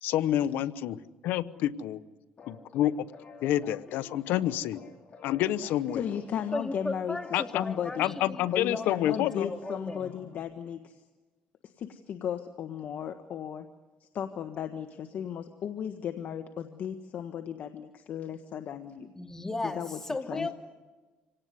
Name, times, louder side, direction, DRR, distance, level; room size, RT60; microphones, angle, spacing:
voice 1, 0.0-2.0 2.5-3.1 3.4-4.8 5.2-6.0 7.3-7.7 8.0-9.5, left 12 dB, 85° left, 15 dB, 0.9 m, -28 dB
sound 1, 2.4-10.4, left 5 dB, 40° left, 5.2 m, -51 dB
voice 2, 5.6-7.2 7.5-8.1 8.5-11.0 11.6-13.7 14.0-19.1 19.6-20.0 20.3-20.5, left 8 dB, 60° left, 8 dB, 1.4 m, -35 dB
voice 3, 6.5-8.5 8.7-10.1 19.2-20.5, left 2 dB, 15° left, 5 dB, 2.5 m, -36 dB
26.5 x 18.0 x 9.6 m, 1.2 s
cardioid pair, 95°, 3 cm